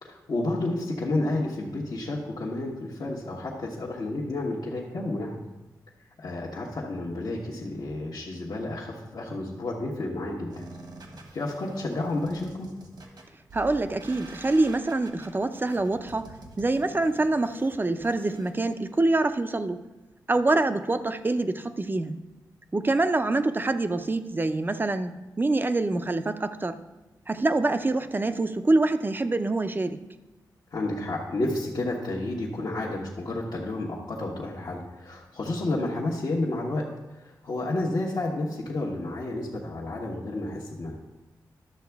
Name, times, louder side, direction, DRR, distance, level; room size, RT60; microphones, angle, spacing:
voice 1, 0.0-5.4 6.2-10.7 11.3-12.7 30.7-40.9, left 2 dB, 60° left, -5 dB, 1.2 m, -31 dB
sound 1, 10.5-18.5, right 2 dB, 70° right, 1.5 m, -47 dB
voice 2, 13.5-19.8 20.3-22.2 22.7-25.1 25.4-26.8 27.3-30.0, right 2 dB, 25° right, 10 dB, 0.5 m, -25 dB
11.5 x 6.9 x 3.5 m, 1.1 s
cardioid pair, 70°, 7 cm